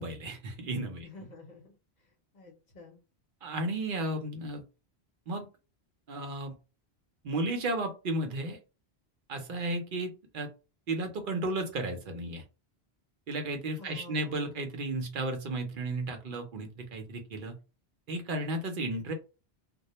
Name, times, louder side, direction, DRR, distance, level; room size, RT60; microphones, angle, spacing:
voice 1, 0.0-1.1 3.4-4.6 5.3-5.5 6.1-6.5 7.2-8.6 9.3-10.5 10.9-12.4 13.3-17.6 18.1-19.1, right 2 dB, 55° right, 5 dB, 0.7 m, -33 dB
voice 2, 1.0-1.7 2.3-3.0 13.8-14.6, left 3 dB, 45° left, 1 dB, 0.8 m, -50 dB
2.2 x 2.1 x 2.8 m, 0.31 s
omnidirectional pair, 1.1 m